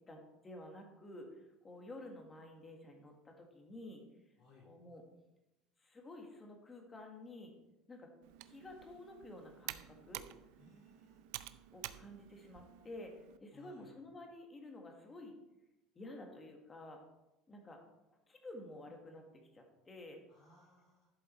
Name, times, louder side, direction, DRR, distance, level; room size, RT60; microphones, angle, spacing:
voice 1, 0.0-4.0 4.6-5.0 5.8-7.5 7.9-8.1 8.4-10.2 11.7-15.3 15.9-17.0 17.5-17.8 18.3-19.2 19.5-20.2, left 1 dB, 15° left, 3 dB, 1.5 m, -51 dB
voice 2, 4.4-4.7 10.6-11.3 13.5-13.9 20.3-21.1, left 2 dB, 40° left, -2 dB, 3.2 m, -63 dB
Computer keyboard, 8.2-13.4, right 16 dB, 70° right, 0.5 m, -50 dB
11.0 x 7.6 x 4.3 m, 0.95 s
cardioid pair, 175°, 0 cm